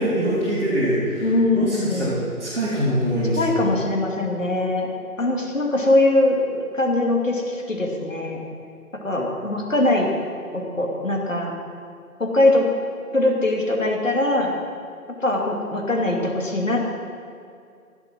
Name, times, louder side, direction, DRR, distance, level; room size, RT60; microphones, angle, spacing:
voice 1, 0.0-3.5, equal, 50° right, -10 dB, 3.9 m, -23 dB
voice 2, 1.2-2.1 3.3-4.9 5.2-8.4 9.0-10.1 10.5-11.5 12.2-12.7 13.1-14.5 15.2-16.9, left 2 dB, 60° left, 0 dB, 2.5 m, -21 dB
15.0 x 7.8 x 6.1 m, 2.4 s
figure-of-eight pair, 170°, 44 cm